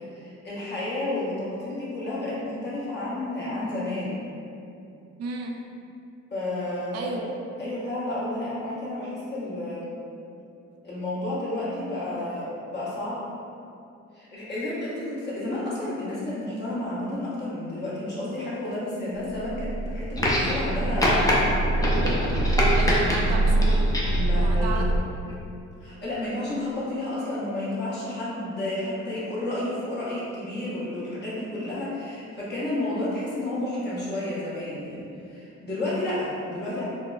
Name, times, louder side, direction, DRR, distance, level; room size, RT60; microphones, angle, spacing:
voice 1, 0.1-4.2 6.3-7.3 7.6-9.9 10.8-13.2 14.1-21.6 24.1-24.9 25.8-36.8, left 1 dB, 35° left, -9 dB, 1.0 m, -31 dB
voice 2, 5.2-5.6 6.9-7.2 22.8-23.9 24.3-24.9, right 4 dB, 55° right, 1 dB, 0.5 m, -33 dB
sound 1, 19.2-25.0, right 1 dB, 55° left, 0.6 m, -25 dB
sound 2, 20.2-20.7 21.0-21.4 21.8-23.2 23.6-24.2 25.3-25.4, left 1 dB, 10° left, 0.5 m, -24 dB
3.9 x 2.0 x 2.3 m, 2.7 s
cardioid pair, 90°, 30 cm